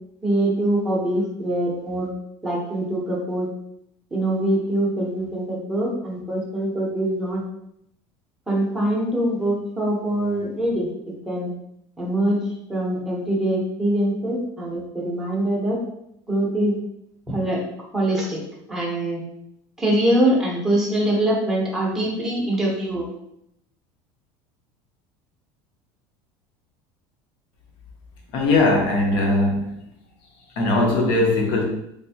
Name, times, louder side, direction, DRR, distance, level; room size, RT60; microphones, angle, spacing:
voice 1, 0.2-2.1 2.4-3.5 4.1-7.4 8.5-10.9 11.2-11.5 12.0-12.4 12.7-15.8 16.3-16.8 17.3-17.6 17.9-18.4 18.7-19.2 19.8-23.1, right 1 dB, 5° right, -5 dB, 0.7 m, -23 dB
voice 2, 28.3-29.8 30.6-31.6, left 2 dB, 45° left, 1 dB, 0.8 m, -20 dB
3.3 x 2.6 x 2.7 m, 0.76 s
cardioid pair, 180°, 11 cm